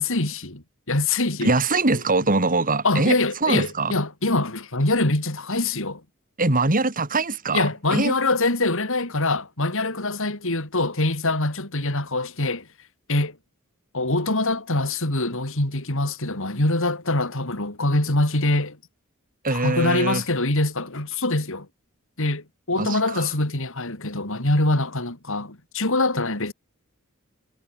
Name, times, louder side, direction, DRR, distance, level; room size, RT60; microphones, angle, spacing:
voice 1, 0.0-1.5 2.8-6.0 7.5-12.7 13.1-13.4 13.9-18.8 19.5-21.7 22.2-26.5, left 2 dB, 65° left, 4.8 m, -24 dB
voice 2, 1.4-4.0 6.4-8.1 19.4-20.2 22.7-23.3, right 3 dB, 40° right, 3.0 m, -23 dB
head